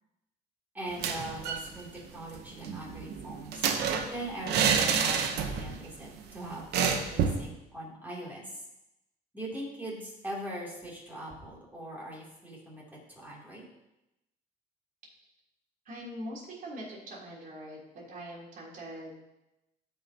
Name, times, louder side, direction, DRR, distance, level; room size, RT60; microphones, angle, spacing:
voice 1, 0.7-8.6 9.3-13.6, right 1 dB, 10° right, -4 dB, 3.0 m, -41 dB
sound 1, 0.9-1.7 2.0-2.1 2.3-5.8 6.1-6.2 6.7-7.5, right 6 dB, 75° right, 0.9 m, -28 dB
voice 2, 15.8-17.8 18.1-19.1, equal, 50° right, -4 dB, 3.4 m, -42 dB
14.5 x 5.6 x 2.9 m, 0.91 s
cardioid pair, 110°, 17 cm